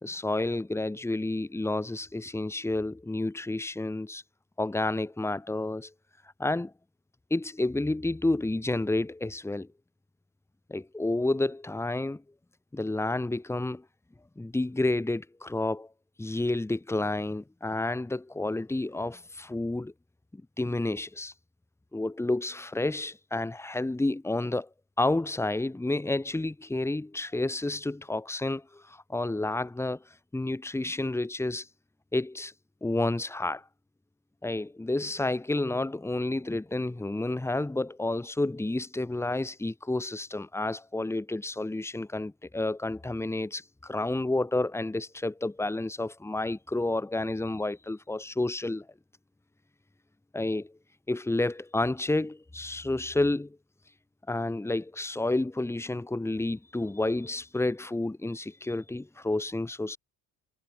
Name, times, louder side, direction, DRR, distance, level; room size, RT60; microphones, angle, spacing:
voice 1, 0.0-4.2 4.6-5.9 6.4-6.7 7.3-9.7 10.7-12.2 12.7-13.8 14.4-15.9 16.2-19.9 20.3-21.3 21.9-24.7 25.0-30.0 30.3-31.7 32.1-32.5 32.8-33.6 34.4-48.9 50.3-50.7 51.1-53.6 54.3-60.0, left 2 dB, 10° left, 3.6 m, -30 dB
cardioid pair, 135°, 32 cm